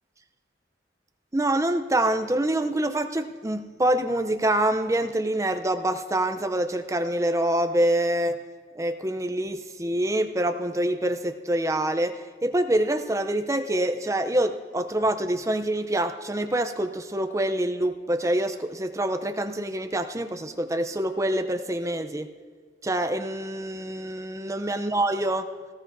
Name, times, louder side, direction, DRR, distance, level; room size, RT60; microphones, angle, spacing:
voice 1, 1.3-8.4 8.8-22.3 22.8-25.5, right 1 dB, 15° right, 7 dB, 0.5 m, -26 dB
18.5 x 15.0 x 2.7 m, 1.5 s
head